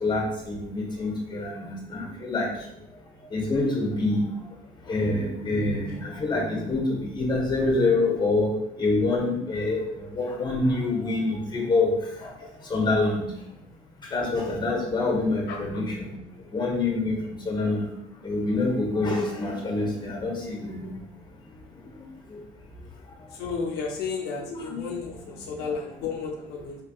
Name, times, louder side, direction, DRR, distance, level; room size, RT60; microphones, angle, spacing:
voice 1, 0.0-2.5 3.3-4.2 4.9-8.5 8.8-9.8 10.1-11.9 12.7-13.2 14.1-16.1 16.5-17.2 17.5-17.9 18.2-20.9 24.5-24.9, left 2 dB, 25° left, 0 dB, 1.1 m, -26 dB
voice 2, 23.4-26.8, left 5 dB, 80° left, 0 dB, 0.6 m, -32 dB
3.6 x 3.4 x 2.4 m, 0.79 s
cardioid pair, 110°, 17 cm